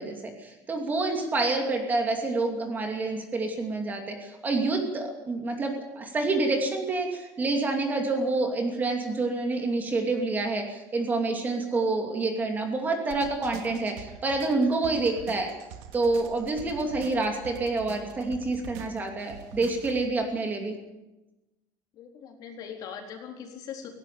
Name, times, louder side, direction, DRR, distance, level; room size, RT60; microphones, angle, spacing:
voice 1, 0.0-15.5 15.9-20.8, right 3 dB, 20° right, 3 dB, 2.7 m, -28 dB
sound 1, 13.1-20.1, right 8 dB, 85° right, 2.1 m, -45 dB
voice 2, 21.9-23.9, left 7 dB, 45° left, 2 dB, 3.9 m, -41 dB
18.5 x 17.0 x 8.5 m, 1.0 s
cardioid pair, 165°, 9 cm